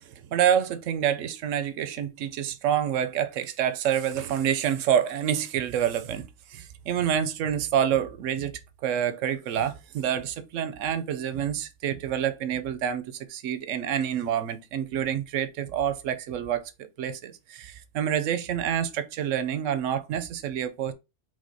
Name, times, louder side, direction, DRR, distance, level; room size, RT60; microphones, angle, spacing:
voice 1, 0.1-20.9, right 9 dB, 80° right, 0.9 m, -27 dB
5.0 x 3.5 x 2.6 m
omnidirectional pair, 1.3 m